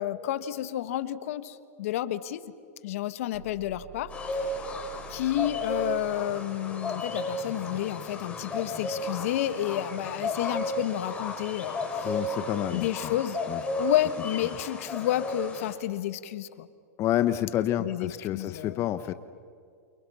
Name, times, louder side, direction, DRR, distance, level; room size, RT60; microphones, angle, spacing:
voice 1, 0.0-2.5 2.8-4.5 5.1-12.1 12.7-13.4 13.8-16.7 17.8-18.8, left 13 dB, 65° left, 13 dB, 1.5 m, -30 dB
sound 1, 3.3-6.1, right 11 dB, 65° right, 5.8 m, -49 dB
sound 2, 4.1-15.7, left 2 dB, 15° left, 6.3 m, -34 dB
voice 2, 12.0-13.1 13.5-13.6 17.0-19.1, left 12 dB, 35° left, 11 dB, 1.0 m, -29 dB
29.5 x 28.5 x 5.8 m, 2.3 s
hypercardioid pair, 120°, 8 cm